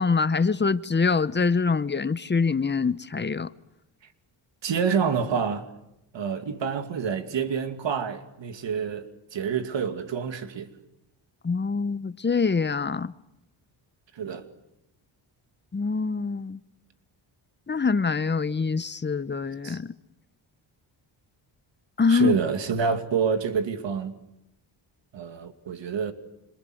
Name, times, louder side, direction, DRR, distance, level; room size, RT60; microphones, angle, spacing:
voice 1, 0.0-3.5 11.4-13.1 15.7-16.6 17.7-19.9 22.0-22.4, left 4 dB, 20° left, 1.0 m, -24 dB
voice 2, 4.6-5.6 6.1-10.7 14.1-14.4 19.6-19.8 22.1-24.2 25.1-26.1, right 6 dB, 65° right, 2.6 m, -28 dB
27.0 x 25.5 x 8.0 m
cardioid pair, 85°, 48 cm